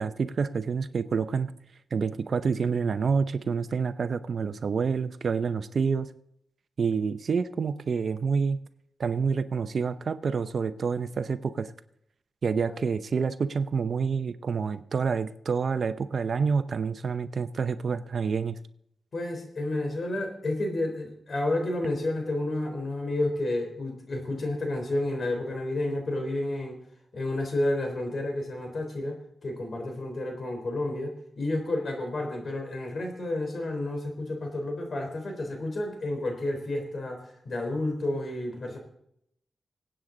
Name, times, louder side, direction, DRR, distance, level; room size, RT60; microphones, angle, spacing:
voice 1, 0.0-1.5 1.9-6.1 6.8-8.6 9.0-11.7 12.4-18.6, right 5 dB, 60° right, 12 dB, 0.7 m, -28 dB
voice 2, 19.1-26.8 27.1-38.8, left 1 dB, 55° left, 4 dB, 3.7 m, -31 dB
25.0 x 8.8 x 3.9 m, 0.75 s
wide cardioid pair, 90°, 0 cm